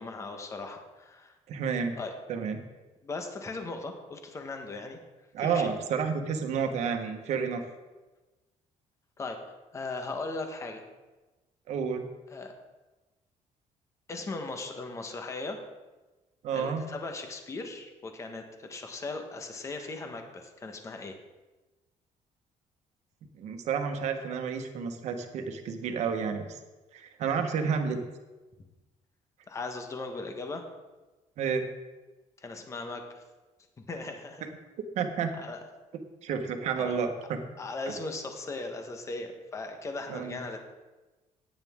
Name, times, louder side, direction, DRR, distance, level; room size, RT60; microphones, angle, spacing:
voice 1, 0.0-1.3 2.0-2.1 3.0-5.0 5.4-5.7 9.2-9.4 9.7-10.8 12.3-12.5 14.1-15.6 16.5-21.2 29.5-30.6 32.4-33.2 33.9-34.4 35.3-35.6 36.8-36.9 37.6-40.7, left 3 dB, 25° left, 5 dB, 1.2 m, -38 dB
voice 2, 1.5-2.0 2.3-2.6 5.3-7.6 11.7-12.0 16.4-16.9 23.4-26.6 26.9-28.0 31.4-31.6 34.9-35.3 36.2-37.4 40.1-40.4, right 6 dB, 60° right, 5 dB, 1.4 m, -30 dB
15.5 x 9.5 x 3.7 m, 1.2 s
cardioid pair, 175°, 13 cm